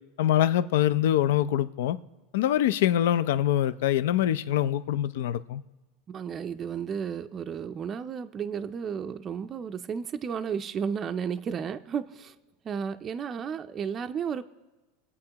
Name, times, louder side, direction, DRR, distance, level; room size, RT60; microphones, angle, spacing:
voice 1, 0.2-2.0 2.3-5.6, left 11 dB, 75° left, 0.5 m, -24 dB
voice 2, 6.1-12.3 12.6-14.4, right 7 dB, 25° right, 0.4 m, -33 dB
24.5 x 8.4 x 2.9 m
supercardioid pair, 135°, 0 cm